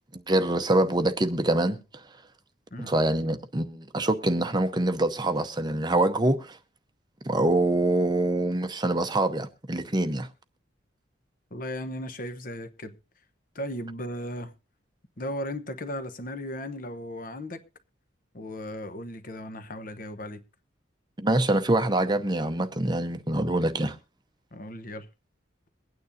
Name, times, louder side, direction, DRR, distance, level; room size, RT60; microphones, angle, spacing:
voice 1, 0.1-1.8 2.8-6.6 7.2-10.3 21.2-24.0, right 1 dB, 20° right, 0.7 m, -25 dB
voice 2, 11.5-12.9 13.5-14.5 15.2-17.6 18.3-20.4 24.5-25.1, equal, 45° left, 0.9 m, -36 dB
22.5 x 9.3 x 2.6 m
head